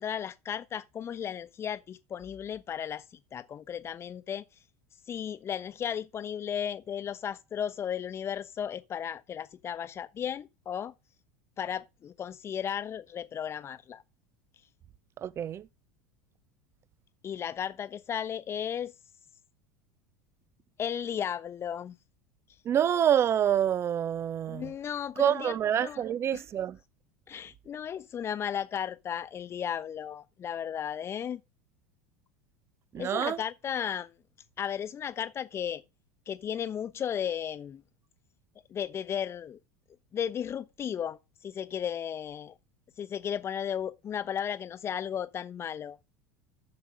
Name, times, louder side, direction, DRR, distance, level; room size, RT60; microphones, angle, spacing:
voice 1, 0.0-3.0 3.3-4.4 5.1-10.9 11.6-14.0 17.2-18.9 20.8-22.0 24.5-25.5 25.8-26.0 26.3-26.4 27.3-31.4 33.0-34.1 34.6-35.8 36.3-37.8 38.7-39.6 40.1-42.5 43.0-46.0, left 8 dB, 30° left, 1.0 m, -35 dB
voice 2, 15.2-15.7 22.6-24.7 25.2-26.8 32.9-33.4, right 9 dB, 30° right, 0.6 m, -27 dB
7.5 x 6.9 x 6.2 m
figure-of-eight pair, 75°, 8 cm